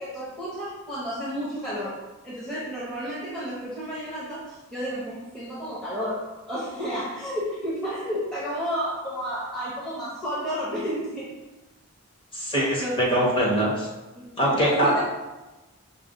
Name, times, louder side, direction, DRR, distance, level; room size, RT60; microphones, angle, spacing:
voice 1, 0.0-11.3 12.8-13.2 14.1-15.0, equal, ahead, -9 dB, 0.7 m, -31 dB
voice 2, 12.3-13.9 14.4-15.0, right 1 dB, 25° left, -5 dB, 1.1 m, -23 dB
5.5 x 2.2 x 3.8 m, 1.1 s
head